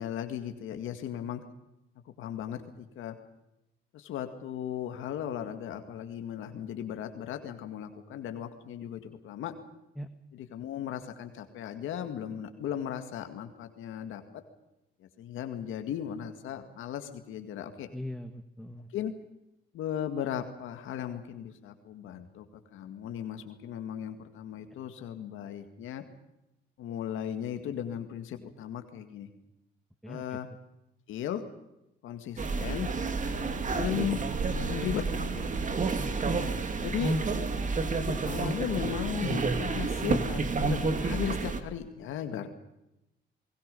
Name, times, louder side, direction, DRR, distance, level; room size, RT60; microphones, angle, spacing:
voice 1, 0.0-1.4 2.2-3.1 3.9-9.6 10.3-14.4 15.0-17.9 18.9-19.1 19.7-26.0 26.8-29.3 30.1-30.5 31.1-31.4 32.0-32.9 33.7-34.2 34.6-35.5 36.8-37.2 37.9-42.5, left 10 dB, 85° left, 7 dB, 2.1 m, -36 dB
voice 2, 17.9-18.9 30.0-30.4 36.0-36.6, left 1 dB, ahead, 7 dB, 1.4 m, -41 dB
sound 1, 32.4-41.6, right 4 dB, 40° right, 2.4 m, -30 dB
30.0 x 20.0 x 5.5 m, 0.89 s
cardioid pair, 90°, 20 cm